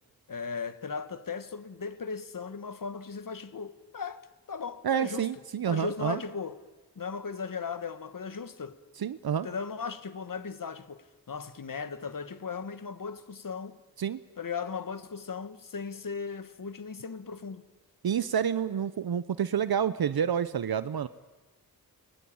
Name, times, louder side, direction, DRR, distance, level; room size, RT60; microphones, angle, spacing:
voice 1, 0.3-5.3 5.6-6.6 6.9-8.8 9.4-13.8 14.4-17.7, left 5 dB, 60° left, 1.6 m, -37 dB
voice 2, 4.8-6.2 9.0-9.5 14.0-14.2 18.0-21.1, right 8 dB, 70° right, 0.8 m, -28 dB
27.5 x 22.5 x 8.7 m
wide cardioid pair, 110°, 38 cm